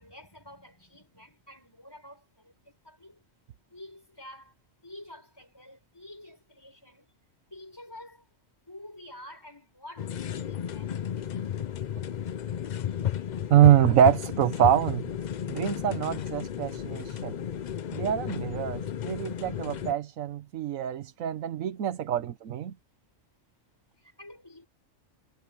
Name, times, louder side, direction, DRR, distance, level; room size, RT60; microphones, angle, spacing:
voice 1, 0.0-3.2 3.7-4.5 4.8-7.1 7.5-8.3 8.7-11.2 24.0-24.7, left 1 dB, 15° left, 6.1 m, -49 dB
sound 1, 10.0-19.9, left 9 dB, 60° left, 0.4 m, -33 dB
voice 2, 13.5-15.0 15.5-17.3 17.9-22.7, right 11 dB, 85° right, 1.3 m, -24 dB
omnidirectional pair, 1.4 m